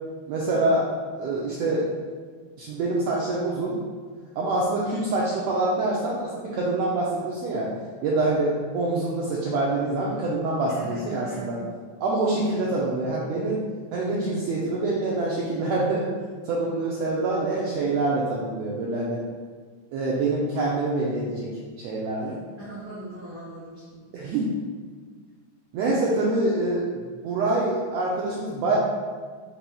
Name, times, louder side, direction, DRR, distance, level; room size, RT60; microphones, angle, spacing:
voice 1, 0.3-0.8 1.2-1.8 2.6-3.8 4.4-7.7 8.0-11.6 12.0-13.6 13.9-16.1 16.4-19.2 19.9-21.5 21.8-22.4 24.1-24.4 25.7-26.8 27.2-28.8, right 2 dB, 80° right, -4 dB, 1.5 m, -25 dB
voice 2, 10.7-11.6 22.2-24.1, equal, 60° right, -10 dB, 1.0 m, -41 dB
5.3 x 4.3 x 2.3 m, 1.5 s
omnidirectional pair, 3.4 m